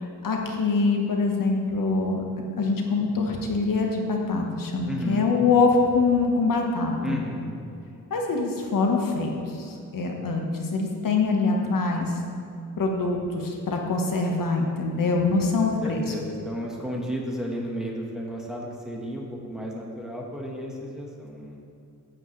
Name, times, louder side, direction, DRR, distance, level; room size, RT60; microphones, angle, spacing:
voice 1, 0.0-7.2 8.1-12.1 12.8-16.0, left 3 dB, 65° left, 1 dB, 1.3 m, -24 dB
voice 2, 4.8-5.3 7.0-7.5 15.3-21.6, equal, ahead, -2 dB, 1.3 m, -33 dB
14.5 x 8.1 x 3.2 m, 2.6 s
wide cardioid pair, 155°, 35 cm